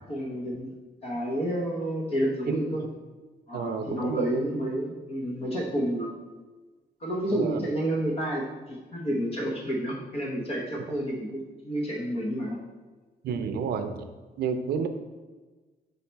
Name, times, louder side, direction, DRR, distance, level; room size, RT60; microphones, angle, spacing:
voice 1, 0.1-0.7 1.0-2.8 3.5-6.1 7.0-12.6, right 1 dB, 35° left, -2 dB, 0.9 m, -30 dB
voice 2, 3.5-4.5 7.3-7.6 13.2-14.0 14.4-14.9, right 6 dB, 70° right, 8 dB, 0.5 m, -30 dB
5.6 x 4.2 x 4.5 m, 1.3 s
cardioid pair, 180°, 17 cm